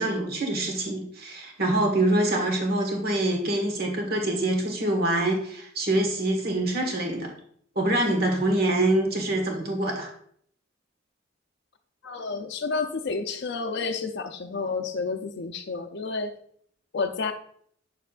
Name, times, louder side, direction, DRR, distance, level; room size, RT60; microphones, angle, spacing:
voice 1, 0.0-7.3 7.7-10.1, right 1 dB, 55° right, 2 dB, 1.6 m, -25 dB
voice 2, 12.0-16.3 16.9-17.3, left 4 dB, 60° left, 4 dB, 0.5 m, -30 dB
8.2 x 6.7 x 2.4 m, 0.62 s
head